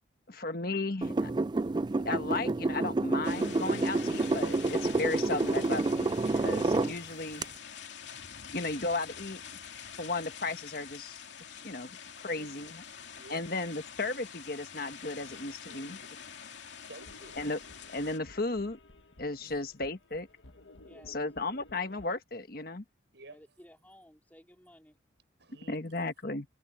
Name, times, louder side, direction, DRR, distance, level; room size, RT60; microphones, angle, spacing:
voice 1, 0.3-1.3 2.0-7.4 8.5-11.2 11.5-12.7 13.3-16.0 17.4-17.6 17.9-18.8 19.2-20.3 21.1-22.8 25.7-26.4, left 3 dB, 50° left, 1.4 m, -35 dB
sound 1, 1.0-6.9 7.4-7.5, right 2 dB, 25° right, 0.3 m, -29 dB
sound 2, 3.2-18.2, left 7 dB, 75° left, 2.6 m, -46 dB
voice 2, 12.2-13.5 15.6-16.4 16.7-17.5 19.4-19.7 23.1-23.4 25.4-26.1, right 2 dB, 70° right, 7.1 m, -54 dB
sound 3, 17.0-22.1, left 2 dB, 90° left, 1.6 m, -55 dB
voice 3, 20.9-21.2 23.3-25.0, equal, 10° left, 4.4 m, -57 dB
head